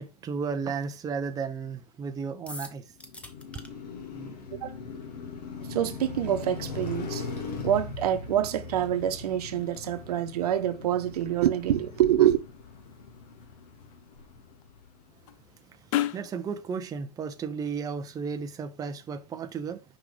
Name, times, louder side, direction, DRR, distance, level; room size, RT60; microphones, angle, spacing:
voice 1, 0.0-2.9 16.1-19.8, right 5 dB, 15° right, 0.7 m, -34 dB
sound 1, 2.5-3.7, left 1 dB, 5° left, 1.0 m, -42 dB
Car passing by, 3.0-15.2, left 4 dB, 65° left, 2.5 m, -40 dB
voice 2, 5.7-7.3 7.6-12.4, right 11 dB, 65° right, 1.1 m, -26 dB
sound 2, 7.6-16.3, left 14 dB, 50° left, 0.6 m, -40 dB
5.8 x 5.1 x 4.8 m
hypercardioid pair, 115°, 21 cm